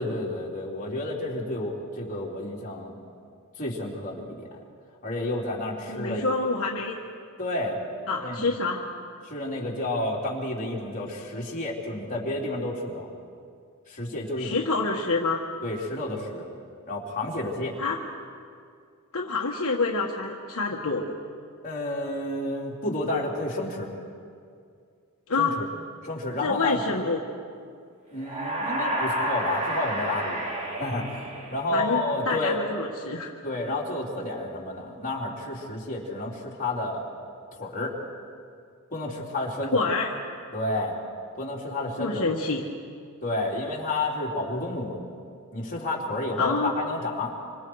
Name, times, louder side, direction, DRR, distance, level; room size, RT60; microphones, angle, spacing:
voice 1, 0.0-2.9 3.6-4.5 5.0-6.2 7.4-7.8 8.2-8.5 9.2-13.1 13.9-14.6 15.6-16.5 16.9-17.8 21.6-23.9 25.4-25.7 26.0-26.8 28.1-30.4 30.8-32.6 33.4-37.1 37.5-38.0 38.9-39.8 40.5-41.0 41.4-42.3 43.2-45.0 45.5-47.3, left 2 dB, 40° left, -3 dB, 3.8 m, -30 dB
voice 2, 5.9-7.0 8.1-8.8 14.4-15.4 17.8-18.0 19.1-21.2 25.3-25.6 26.4-27.2 31.7-33.3 39.7-40.2 42.0-42.6 46.4-46.7, left 3 dB, 65° left, -1 dB, 1.5 m, -27 dB
sound 1, 28.2-32.0, right 1 dB, 30° right, 2.8 m, -30 dB
27.0 x 25.5 x 4.8 m, 2.3 s
head